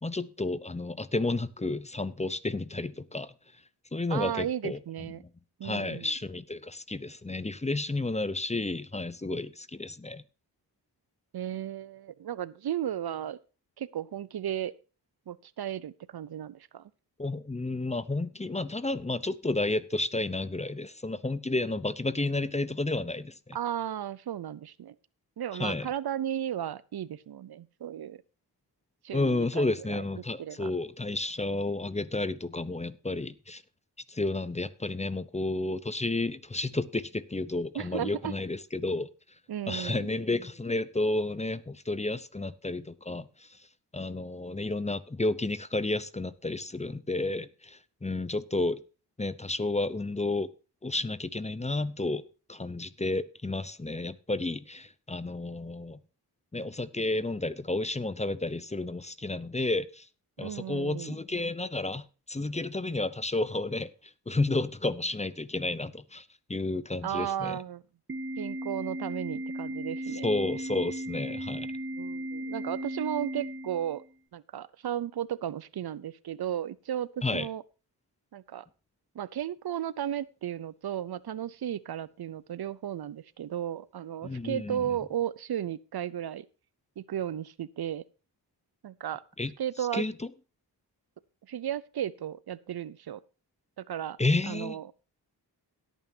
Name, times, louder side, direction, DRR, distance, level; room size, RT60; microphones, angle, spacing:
voice 1, 0.0-3.3 3.9-5.3 5.6-10.2 17.2-23.6 25.6-25.9 29.1-33.6 34.1-39.1 39.7-43.6 43.9-48.8 49.2-50.5 50.8-52.2 52.5-56.0 56.5-60.1 60.4-67.6 70.2-71.7 77.2-77.5 84.2-84.8 89.4-89.5 89.9-90.3 94.2-94.8, left 2 dB, 15° left, 0.8 m, -31 dB
voice 2, 4.1-5.2 5.6-6.1 11.3-13.4 13.8-14.7 15.3-16.9 23.5-25.0 25.4-28.2 29.0-30.0 30.4-30.7 37.7-38.3 39.5-40.1 60.4-61.2 67.0-67.8 68.4-70.3 71.9-74.0 74.3-77.6 78.3-78.7 79.1-86.5 87.0-88.0 88.8-89.2 89.6-90.0 91.5-93.2 93.8-94.2 94.5-94.9, right 10 dB, 65° right, 0.7 m, -34 dB
Organ, 68.1-74.1, right 1 dB, 30° right, 1.9 m, -36 dB
17.0 x 9.3 x 2.8 m
cardioid pair, 75°, 40 cm